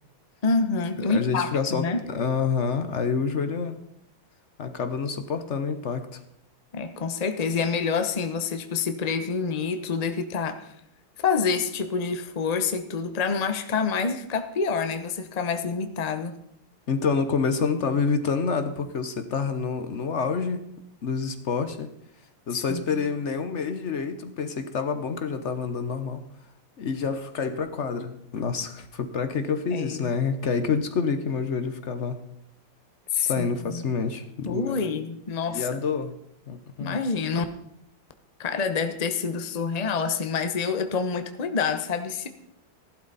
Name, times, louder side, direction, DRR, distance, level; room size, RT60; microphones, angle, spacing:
voice 1, 0.4-2.0 6.7-10.7 11.2-16.4 22.5-23.0 29.7-30.1 33.1-33.8 34.4-35.8 36.8-37.4 38.4-42.3, left 5 dB, 80° left, 8 dB, 0.3 m, -27 dB
voice 2, 1.1-3.8 4.6-6.2 16.9-20.6 21.0-21.9 22.5-26.2 26.8-32.2 33.2-34.8 35.5-36.2 36.5-37.0, left 5 dB, 55° left, 9 dB, 0.8 m, -28 dB
15.0 x 11.5 x 4.1 m, 0.76 s
omnidirectional pair, 2.2 m